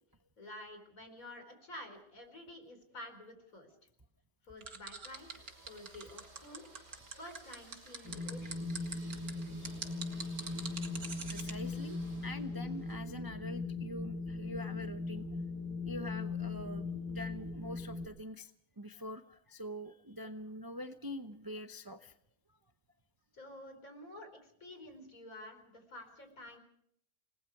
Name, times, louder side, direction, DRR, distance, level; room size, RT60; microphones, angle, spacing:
voice 1, 0.4-3.7 4.4-5.3 5.6-6.7 7.1-8.7 23.3-26.6, left 1 dB, 55° left, 6 dB, 4.8 m, -50 dB
sound 1, 4.6-11.5, right 5 dB, 60° right, 2.4 m, -43 dB
sound 2, 5.0-12.9, right 2 dB, 90° right, 6.6 m, -59 dB
Wind, 8.0-18.0, left 3 dB, 80° left, 5.8 m, -39 dB
voice 2, 11.3-15.3 15.8-22.1 22.5-22.6, equal, 25° right, 7 dB, 0.5 m, -45 dB
29.0 x 19.5 x 4.8 m, 0.70 s
omnidirectional pair, 1.8 m